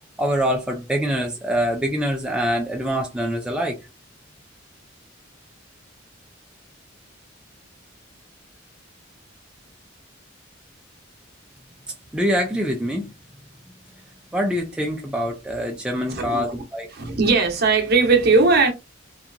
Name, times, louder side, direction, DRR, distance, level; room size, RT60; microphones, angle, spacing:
voice 1, 0.2-3.8 12.1-13.1 14.3-16.9, equal, 5° right, 0.3 m, -24 dB
voice 2, 16.1-16.4 16.9-18.7, right 4 dB, 50° right, 0.8 m, -18 dB
2.7 x 2.3 x 2.4 m
head